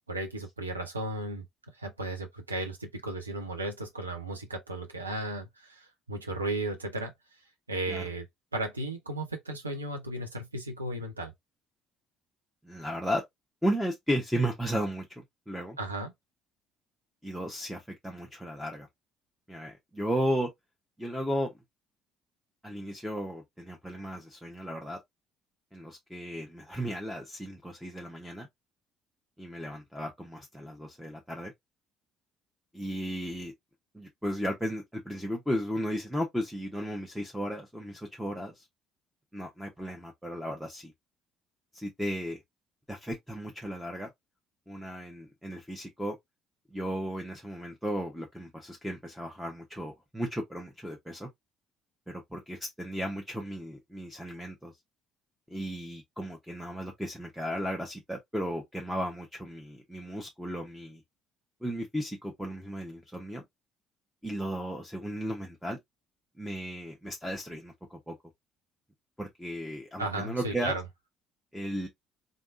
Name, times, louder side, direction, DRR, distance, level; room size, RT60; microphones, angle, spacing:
voice 1, 0.1-1.4 1.8-7.1 7.7-8.3 8.5-11.3 15.8-16.1 70.0-70.8, right 2 dB, 85° right, 0.8 m, -35 dB
voice 2, 12.6-13.2 13.6-15.8 17.2-18.9 19.5-20.5 21.0-21.5 22.6-25.0 25.7-28.5 29.4-31.5 32.7-33.5 33.9-38.7 39.3-40.9 41.7-42.4 42.9-44.1 44.7-46.2 46.7-51.3 52.1-54.7 55.5-61.0 61.6-63.4 64.2-65.8 66.4-68.2 69.2-70.8 71.5-71.9, equal, ahead, 1.1 m, -35 dB
3.8 x 3.4 x 2.5 m
figure-of-eight pair, 50°, 0 cm